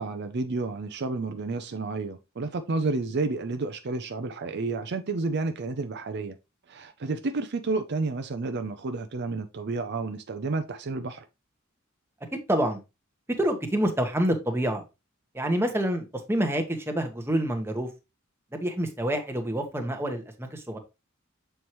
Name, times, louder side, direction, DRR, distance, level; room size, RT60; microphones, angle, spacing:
voice 1, 0.0-6.3 6.7-11.2, right 3 dB, 55° right, 0.6 m, -30 dB
voice 2, 12.3-12.8 13.4-14.8 15.3-17.9 18.5-20.8, right 1 dB, 10° right, 1.1 m, -27 dB
7.1 x 4.6 x 3.1 m
head